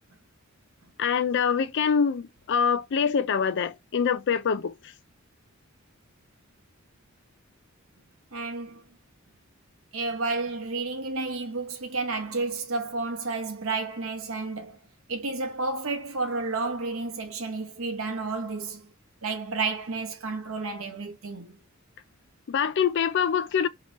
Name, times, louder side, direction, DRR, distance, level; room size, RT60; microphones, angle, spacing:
voice 1, 1.0-4.7 22.5-23.7, left 7 dB, 55° left, 0.4 m, -25 dB
voice 2, 8.3-8.8 9.9-14.8 15.1-18.9 19.2-21.6, right 3 dB, 70° right, 1.0 m, -31 dB
3.0 x 2.9 x 4.2 m
head